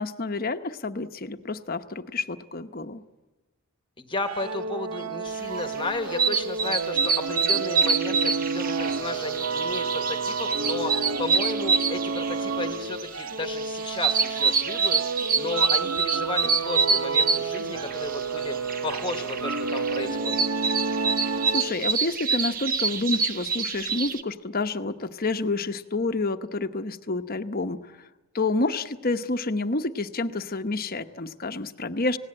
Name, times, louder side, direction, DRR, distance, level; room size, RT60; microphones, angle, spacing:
voice 1, 0.0-3.0 21.5-27.9 28.3-32.2, left 3 dB, 40° left, 9 dB, 0.9 m, -29 dB
voice 2, 4.0-15.0 15.3-20.4, left 2 dB, 20° left, 7 dB, 1.3 m, -34 dB
sound 1, 4.2-21.9, right 4 dB, 70° right, 1.0 m, -30 dB
sound 2, 5.5-24.2, right 5 dB, 40° right, 0.9 m, -27 dB
29.5 x 18.0 x 8.8 m, 1.2 s
head